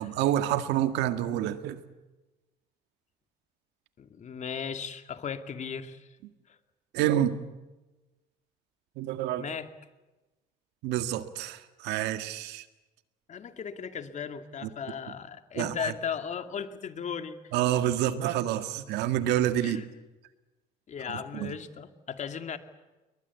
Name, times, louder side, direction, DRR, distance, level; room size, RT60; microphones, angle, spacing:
voice 1, 0.0-1.8 6.9-7.4 9.0-9.4 10.8-12.6 14.6-14.7 15.6-15.7 17.5-19.8 21.4-21.5, right 12 dB, 90° right, 9 dB, 1.9 m, -28 dB
voice 2, 4.0-6.1 6.5-6.6 9.4-9.7 13.3-17.4 18.3-18.4 19.6-19.9 20.9-22.6, left 7 dB, 45° left, 8 dB, 2.4 m, -36 dB
30.0 x 22.5 x 8.4 m, 1.1 s
cardioid pair, 110°, 17 cm